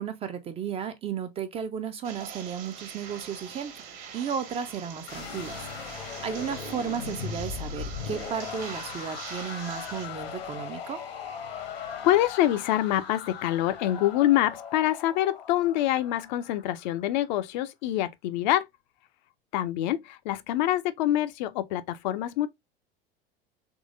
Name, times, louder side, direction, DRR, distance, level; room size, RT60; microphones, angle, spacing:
voice 1, 0.0-3.9 4.1-11.0, right 7 dB, 20° right, 0.4 m, -34 dB
sound 1, 2.0-10.1, right 7 dB, 55° right, 1.1 m, -43 dB
sound 2, 5.1-17.1, left 6 dB, 70° left, 0.9 m, -39 dB
voice 2, 11.7-18.7 19.5-22.5, left 13 dB, 50° left, 0.4 m, -26 dB
3.6 x 3.1 x 2.4 m
figure-of-eight pair, 75°, 31 cm